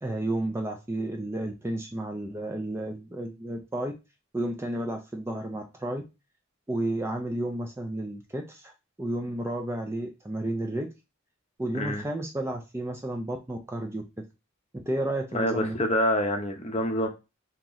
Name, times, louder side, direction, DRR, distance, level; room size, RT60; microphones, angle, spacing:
voice 1, 0.0-3.9 4.3-6.0 6.7-8.7 9.0-10.9 11.6-14.0 14.7-15.8, right 1 dB, 10° right, 0.4 m, -32 dB
voice 2, 15.3-17.1, left 1 dB, 30° left, 0.7 m, -26 dB
3.0 x 2.9 x 3.8 m
head